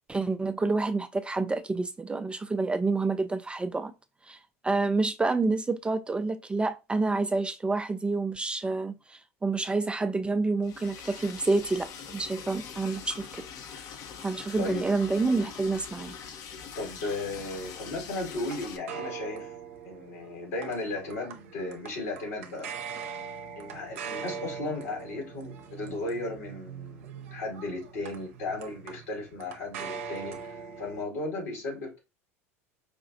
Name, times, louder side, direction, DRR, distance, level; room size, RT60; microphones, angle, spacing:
voice 1, 0.1-3.9 4.3-4.4 4.6-13.4 14.2-16.1, right 3 dB, 15° right, 0.3 m, -28 dB
Liquid, 10.6-18.8, left 7 dB, 50° left, 0.7 m, -43 dB
sound 1, 16.6-31.0, right 7 dB, 70° right, 0.7 m, -42 dB
voice 2, 16.7-19.5 19.8-22.7 23.6-32.0, left 2 dB, 75° left, 2.0 m, -35 dB
4.9 x 2.4 x 2.6 m
hypercardioid pair, 80°, 8 cm